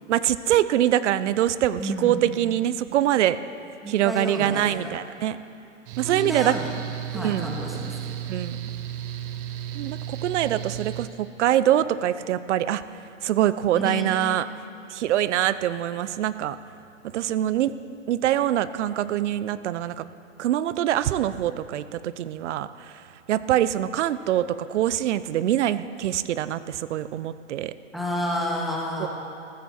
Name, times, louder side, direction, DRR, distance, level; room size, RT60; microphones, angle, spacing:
voice 1, 0.1-3.4 3.9-5.4 6.0-6.6 7.1-7.5 8.3-8.7 9.7-12.8 13.2-14.5 14.9-16.6 17.1-17.7 18.1-20.0 20.4-23.0 23.3-27.7 29.0-29.1, right 12 dB, 65° right, 15 dB, 0.6 m, -24 dB
voice 2, 1.8-2.3 3.8-4.9 6.0-6.7 7.1-8.3 13.8-14.2 27.9-29.1, left 1 dB, ahead, -2 dB, 1.8 m, -30 dB
Mechanical fan, 5.9-11.1, right 11 dB, 45° right, 1.0 m, -34 dB
14.5 x 13.5 x 4.4 m, 2.5 s
hypercardioid pair, 125°, 38 cm